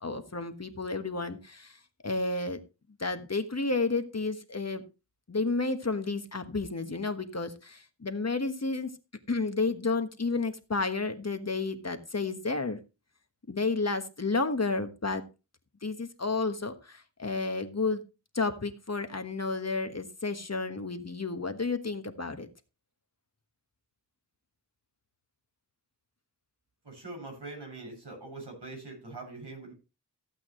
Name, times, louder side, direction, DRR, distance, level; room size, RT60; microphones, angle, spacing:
voice 1, 0.0-2.6 3.0-4.8 5.3-8.9 9.3-12.8 13.5-15.2 15.8-18.0 18.3-22.5, left 3 dB, 40° left, 8 dB, 1.4 m, -31 dB
voice 2, 26.8-29.7, right 2 dB, 75° right, 1 dB, 7.0 m, -43 dB
15.0 x 8.4 x 3.1 m, 0.28 s
wide cardioid pair, 70°, 41 cm